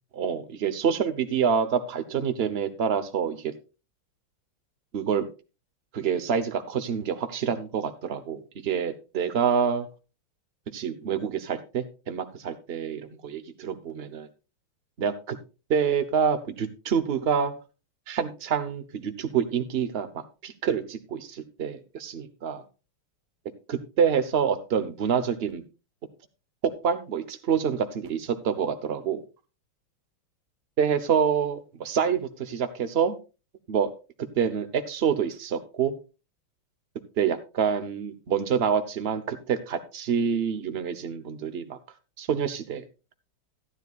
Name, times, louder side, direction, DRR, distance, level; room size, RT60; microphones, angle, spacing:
voice 1, 0.1-3.5 4.9-5.3 5.9-9.9 10.7-14.3 15.0-15.4 15.7-17.5 18.1-22.6 23.7-25.6 26.6-29.2 30.8-33.1 33.7-33.9 34.4-35.9 37.2-41.8 42.2-42.8, right 7 dB, 50° right, 10 dB, 0.7 m, -27 dB
14.5 x 10.5 x 2.4 m, 0.30 s
omnidirectional pair, 2.4 m